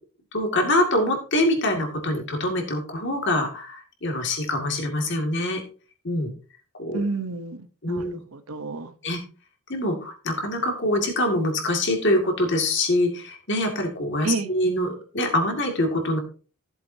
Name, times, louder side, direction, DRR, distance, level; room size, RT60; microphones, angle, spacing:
voice 1, 0.3-5.6 6.0-6.3 6.8-7.0 7.8-8.2 9.0-9.2 9.7-16.2, left 1 dB, 50° left, 2.2 m, -24 dB
voice 2, 6.9-8.9 14.2-14.5, right 3 dB, 75° right, 0.9 m, -30 dB
14.0 x 7.7 x 2.7 m
head